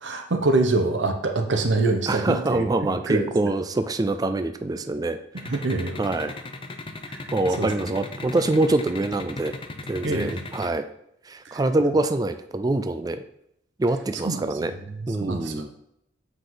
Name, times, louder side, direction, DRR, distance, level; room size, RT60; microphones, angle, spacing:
voice 1, 0.0-2.7 3.1-3.5 5.3-6.0 7.1-7.2 7.6-7.7 10.0-10.4 11.4-11.6 14.2-15.7, right 2 dB, 70° right, 5 dB, 1.0 m, -25 dB
voice 2, 1.9-5.5 6.0-6.3 7.3-9.5 9.9-10.9 11.3-13.2 13.8-14.7 15.1-15.7, right 2 dB, 20° right, 9 dB, 0.4 m, -25 dB
sound 1, 5.4-10.7, left 2 dB, 30° left, 0.6 m, -36 dB
7.8 x 5.0 x 3.9 m, 0.76 s
head